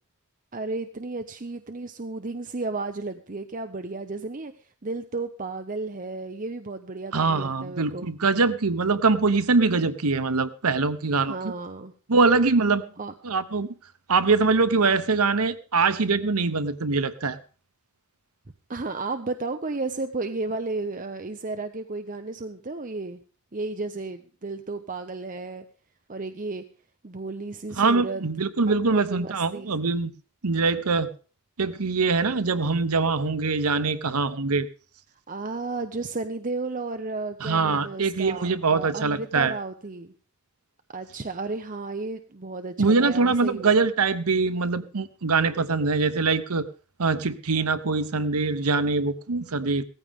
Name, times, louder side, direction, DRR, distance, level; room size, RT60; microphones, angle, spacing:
voice 1, 0.5-4.5 4.8-8.1 11.3-11.9 13.0-13.1 18.7-23.2 23.5-25.6 26.1-26.6 27.0-28.2 28.7-29.8 35.3-40.1 40.9-43.7, right 3 dB, 35° right, 8 dB, 0.8 m, -33 dB
voice 2, 7.1-11.3 12.1-12.9 13.2-13.7 14.1-17.4 27.8-30.1 30.4-31.1 31.6-34.7 37.4-39.5 42.8-46.7 47.0-49.8, right 4 dB, 85° right, 13 dB, 1.0 m, -23 dB
17.5 x 14.5 x 3.6 m, 0.38 s
head